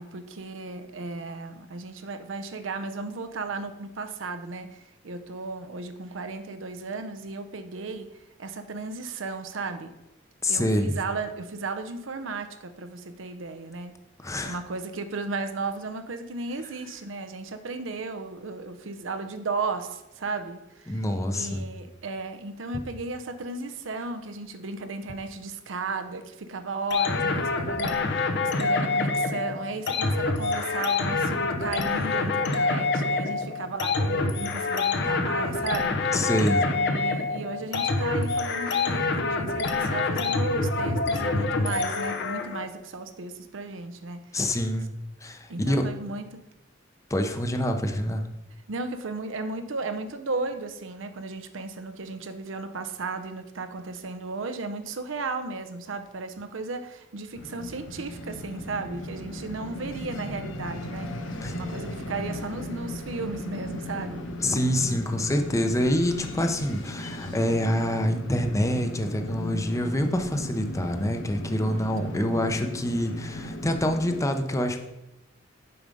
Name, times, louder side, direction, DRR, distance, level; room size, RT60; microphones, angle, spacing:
voice 1, 0.0-8.1 8.4-9.9 10.5-14.0 14.4-21.0 21.3-36.1 36.7-44.2 45.5-46.5 48.7-61.1 61.5-64.3 71.6-71.9, right 3 dB, 85° right, 8 dB, 0.7 m, -35 dB
voice 2, 10.4-11.0 14.2-14.6 20.9-21.6 36.1-36.6 44.3-44.9 45.2-45.9 47.1-48.3 61.4-61.6 64.4-74.8, left 1 dB, 15° left, 5 dB, 0.7 m, -26 dB
sound 1, 26.9-42.6, left 3 dB, 60° left, 0.8 m, -26 dB
sound 2, 57.3-74.2, left 1 dB, 85° left, 0.9 m, -37 dB
7.0 x 4.8 x 5.3 m, 0.94 s
head